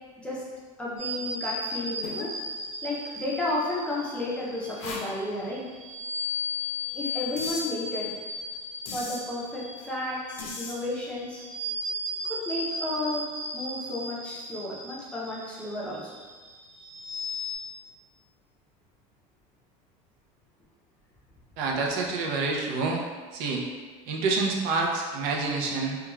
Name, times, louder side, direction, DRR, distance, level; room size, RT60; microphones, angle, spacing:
voice 1, 0.8-2.3 2.8-5.7 6.9-8.1 8.9-11.4 12.2-13.2 13.5-16.0, left 2 dB, 5° left, -6 dB, 0.5 m, -32 dB
sound 1, 1.0-17.6, left 1 dB, 35° right, 0.8 m, -36 dB
sound 2, 2.0-2.3 3.1-3.2 4.8-5.1 7.4-7.7 8.9-9.2 10.4-10.7, left 4 dB, 85° left, 0.5 m, -37 dB
voice 2, 21.6-23.0 23.3-23.6 24.1-26.0, right 3 dB, 60° right, -1 dB, 0.5 m, -27 dB
2.4 x 2.3 x 3.0 m, 1.4 s
supercardioid pair, 140°, 17 cm